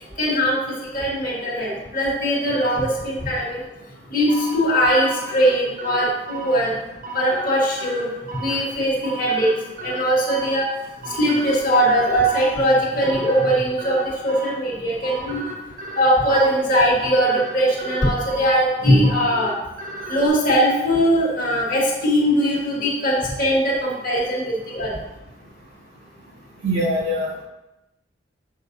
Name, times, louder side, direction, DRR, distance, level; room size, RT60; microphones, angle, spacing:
voice 1, 0.2-0.6 0.9-3.6 4.1-6.7 7.1-8.1 8.4-9.5 9.8-10.7 11.1-15.4 15.9-19.5 20.1-25.0, equal, 50° left, -6 dB, 2.0 m, -20 dB
sound 1, 4.3-20.3, right 1 dB, 45° right, 0.9 m, -35 dB
voice 2, 26.6-27.4, equal, 70° right, -5 dB, 2.5 m, -23 dB
7.2 x 6.2 x 2.7 m, 0.97 s
head